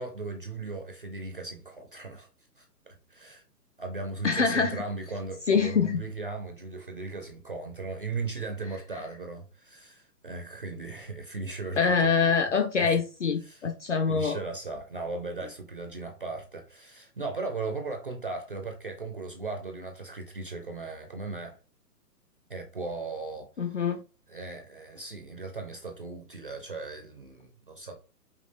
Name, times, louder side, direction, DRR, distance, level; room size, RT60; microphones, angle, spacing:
voice 1, 0.0-2.3 2.6-3.4 3.8-12.4 12.8-13.0 13.4-13.6 14.1-21.6 22.5-23.5 24.3-28.0, right 3 dB, 35° right, 0.5 m, -37 dB
voice 2, 4.2-4.8 5.5-6.0 11.8-14.4 23.6-24.0, left 5 dB, 50° left, 0.5 m, -25 dB
5.2 x 2.4 x 3.0 m
figure-of-eight pair, 130°, 48 cm